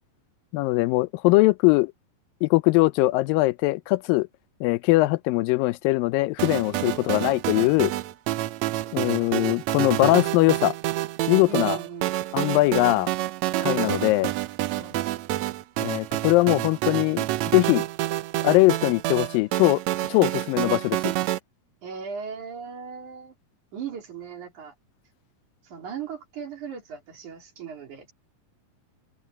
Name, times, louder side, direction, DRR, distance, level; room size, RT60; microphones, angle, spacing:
voice 1, 0.5-1.9 2.4-4.3 4.6-7.9 8.9-10.7 11.3-11.8 12.3-13.1 13.6-14.3 15.8-17.2 17.5-17.9 18.4-19.8 20.1-21.0, left 21 dB, 85° left, 2.3 m, -21 dB
chiptune melody, 6.4-21.4, right 15 dB, 80° right, 1.6 m, -28 dB
voice 2, 6.7-7.3 11.5-12.1 14.8-15.0 21.8-23.3 23.7-24.7 25.6-28.1, right 6 dB, 60° right, 4.4 m, -38 dB
omnidirectional pair, 4.0 m